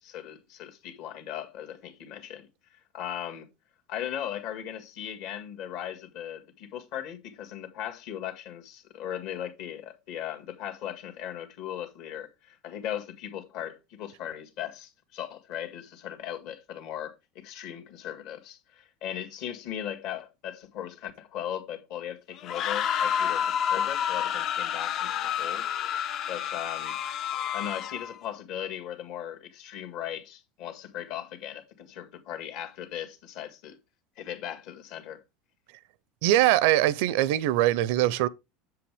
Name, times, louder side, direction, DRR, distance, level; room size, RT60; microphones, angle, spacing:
voice 1, 0.0-3.5 3.9-25.7 26.3-27.0 27.5-33.8 34.2-35.2, left 10 dB, 60° left, 1.8 m, -38 dB
sound 1, 22.4-28.1, left 9 dB, 40° left, 0.5 m, -29 dB
voice 2, 36.2-38.3, right 14 dB, 70° right, 0.6 m, -22 dB
7.7 x 7.4 x 3.4 m
supercardioid pair, 150°, 0 cm